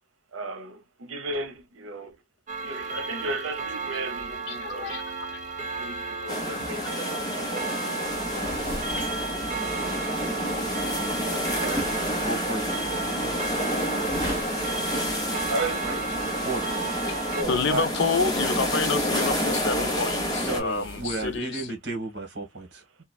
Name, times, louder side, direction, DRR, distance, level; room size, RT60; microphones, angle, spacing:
voice 1, 0.3-2.2 2.6-5.0 5.7-10.4 11.2-12.6 15.5-16.2 17.3-17.9, right 2 dB, 80° right, 0.8 m, -36 dB
Clock, 2.5-17.4, right 3 dB, 35° right, 0.5 m, -34 dB
voice 2, 4.5-5.0 17.1-17.2 17.5-21.6, left 4 dB, 60° left, 0.5 m, -28 dB
sound 1, 6.3-20.6, equal, 20° left, 0.9 m, -29 dB
sound 2, 8.1-21.4, equal, 10° right, 1.4 m, -40 dB
voice 3, 12.2-13.5 16.4-16.6 20.4-22.8, right 2 dB, 55° right, 1.4 m, -34 dB
3.1 x 2.3 x 2.2 m
head